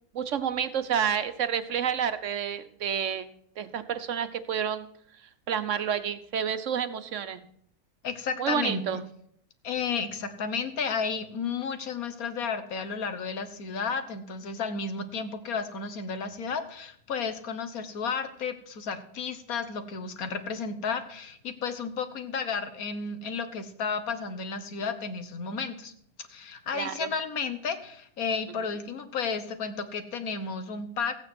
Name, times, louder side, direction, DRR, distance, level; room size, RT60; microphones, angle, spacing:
voice 1, 0.1-3.3 3.6-4.9 5.5-7.4 8.4-9.0 26.7-27.1, right 8 dB, 60° right, 11 dB, 1.2 m, -29 dB
voice 2, 8.0-9.0 9.6-25.9 26.3-31.2, left 5 dB, 90° left, 10 dB, 1.7 m, -32 dB
15.0 x 8.8 x 6.1 m, 0.67 s
omnidirectional pair, 1.5 m